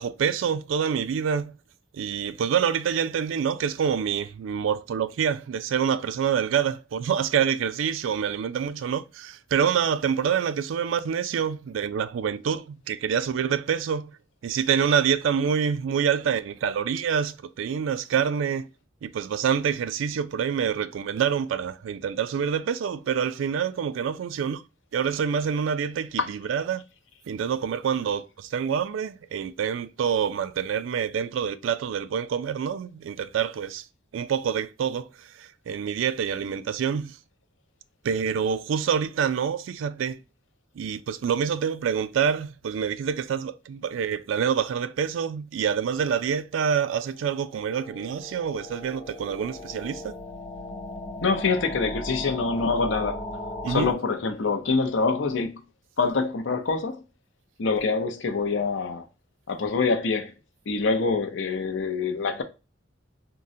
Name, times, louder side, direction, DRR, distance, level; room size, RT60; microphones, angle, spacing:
voice 1, 0.0-1.5 1.9-14.1 14.4-18.7 19.0-24.6 24.9-26.8 27.3-33.8 34.1-37.2 38.0-40.2 40.8-50.2 53.6-53.9, right 7 dB, 85° right, 0.3 m, -26 dB
sound 1, 47.3-53.9, left 1 dB, 10° left, 0.6 m, -37 dB
voice 2, 51.2-53.2 53.7-55.6 56.0-57.0 57.6-59.0 59.5-60.3 60.7-62.4, left 4 dB, 70° left, 0.6 m, -25 dB
3.6 x 2.1 x 2.6 m
head